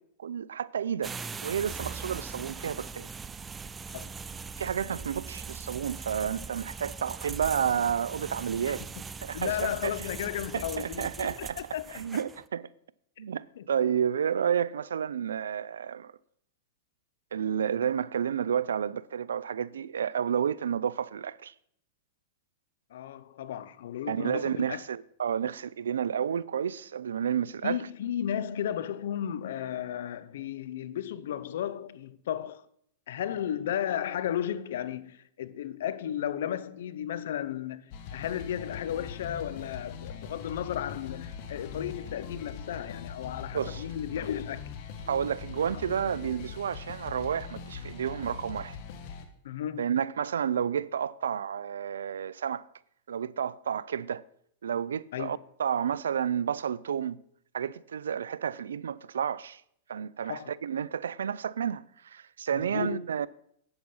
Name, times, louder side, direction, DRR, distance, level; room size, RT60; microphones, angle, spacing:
voice 1, 0.2-1.1 1.4-3.1 4.6-8.8 9.2-9.9 10.5-11.6 11.9-12.7 13.2-16.1 17.3-21.5 24.1-27.8 43.5-43.8 45.1-48.8 49.8-52.7 53.1-54.2 54.6-57.2 57.5-59.6 59.9-63.3, right 8 dB, 90° right, 0.4 m, -31 dB
sound 1, 1.0-12.5, right 5 dB, 15° right, 0.3 m, -41 dB
voice 2, 9.3-12.0 13.6-13.7 22.9-24.8 27.6-32.7 33.1-44.7 49.4-49.9 55.1-55.4 60.2-60.5 62.5-63.0, left 10 dB, 70° left, 0.6 m, -34 dB
sound 2, 37.9-49.2, left 6 dB, 50° left, 1.3 m, -41 dB
8.3 x 7.8 x 5.5 m
hypercardioid pair, 125°, 0 cm